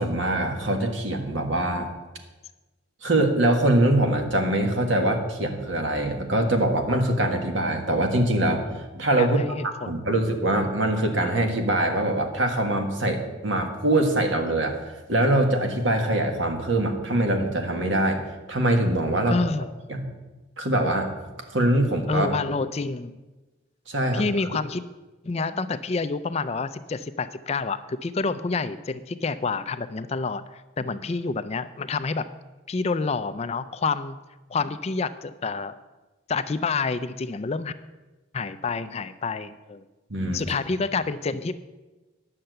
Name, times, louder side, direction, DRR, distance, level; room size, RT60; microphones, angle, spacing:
voice 1, 0.0-1.9 3.0-9.4 9.9-14.7 15.1-18.2 18.5-19.4 19.9-20.1 20.6-21.1 21.5-22.4 23.9-24.2 40.1-40.5, right 1 dB, 65° right, 4 dB, 1.6 m, -23 dB
voice 2, 9.2-9.9 19.3-19.7 22.1-23.1 24.1-24.8 25.2-32.3 32.7-34.2 34.5-35.8 36.3-37.7 38.3-39.8 40.3-41.5, left 4 dB, 30° left, 12 dB, 0.4 m, -28 dB
10.0 x 6.7 x 7.8 m, 1.2 s
head